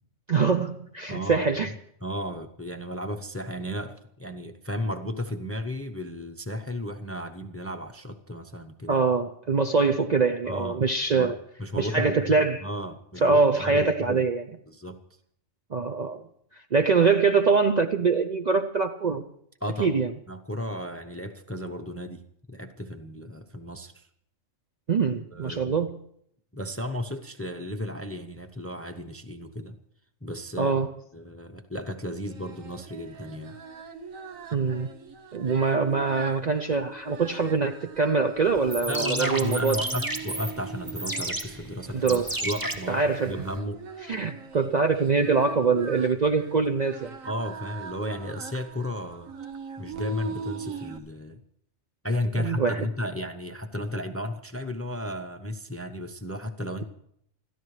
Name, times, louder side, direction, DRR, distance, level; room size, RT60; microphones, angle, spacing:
voice 1, 0.3-1.7 8.9-11.4 11.8-12.7 13.2-14.4 15.7-16.2 16.7-19.2 19.8-20.1 24.9-26.0 30.6-30.9 34.5-34.9 35.3-39.8 41.9-42.4 42.9-43.4 44.0-47.1 52.3-52.9, right 4 dB, 45° right, 0.6 m, -24 dB
voice 2, 1.1-1.7 2.0-9.0 10.5-10.8 11.1-11.3 11.6-14.3 14.7-15.0 19.6-20.0 20.3-22.2 22.5-24.0 25.3-25.8 26.5-29.8 30.2-30.8 31.1-33.6 38.9-43.8 47.2-49.3 49.8-51.4 52.0-56.8, left 1 dB, 15° left, 0.6 m, -34 dB
Singing, 32.2-51.0, right 4 dB, 90° right, 1.4 m, -41 dB
sound 1, 38.6-43.6, right 1 dB, 15° right, 1.1 m, -33 dB
27.0 x 13.5 x 3.2 m
omnidirectional pair, 1.4 m